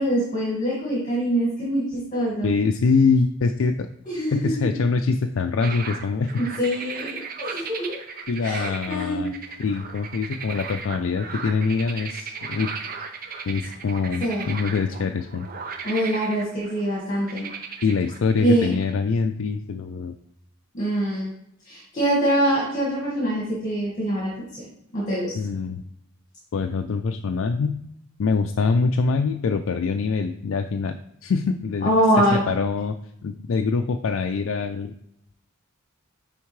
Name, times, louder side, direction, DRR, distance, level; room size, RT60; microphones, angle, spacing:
voice 1, 0.0-2.5 4.1-4.6 6.3-8.0 8.4-9.3 14.2-14.5 15.8-17.5 18.4-18.7 20.7-21.3 21.7-24.4 24.9-25.3 31.8-32.4, right 1 dB, 40° left, -6 dB, 1.7 m, -24 dB
voice 2, 2.4-3.9 4.3-6.4 8.3-9.3 9.6-12.7 13.5-15.5 17.8-20.1 25.3-25.8 26.5-27.8 28.2-31.0 31.2-31.9 32.2-33.0 33.2-34.9, left 4 dB, 70° left, 6 dB, 0.4 m, -24 dB
sound 1, 5.6-18.9, right 5 dB, 45° right, 0.7 m, -36 dB
9.3 x 3.5 x 3.2 m, 0.77 s
head